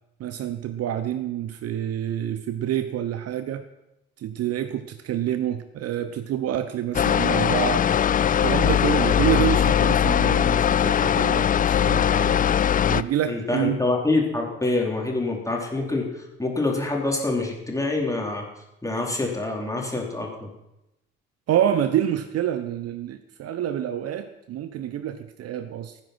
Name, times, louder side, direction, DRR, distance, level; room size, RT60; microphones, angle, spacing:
voice 1, 0.2-3.6 4.2-7.9 8.4-12.4 12.9-13.8 21.5-26.0, right 10 dB, 50° right, 10 dB, 0.9 m, -27 dB
sound 1, 6.9-13.0, left 9 dB, 25° left, 0.4 m, -20 dB
voice 2, 13.3-16.1 16.4-18.5 18.8-20.5, left 2 dB, 10° left, -1 dB, 4.2 m, -26 dB
16.5 x 9.9 x 6.2 m, 0.91 s
figure-of-eight pair, 45°, 31 cm